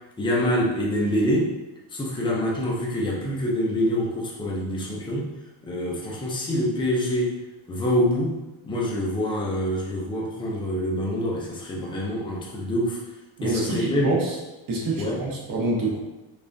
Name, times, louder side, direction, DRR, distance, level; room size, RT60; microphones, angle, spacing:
voice 1, 0.2-1.5 1.9-5.3 5.6-7.4 7.7-8.4 8.7-13.0 13.4-14.1 15.0-15.2, equal, 10° left, -3 dB, 0.4 m, -25 dB
voice 2, 13.4-14.3 14.7-16.0, right 2 dB, 45° right, -2 dB, 0.9 m, -26 dB
3.5 x 3.3 x 2.6 m, 1.1 s
cardioid pair, 170°, 48 cm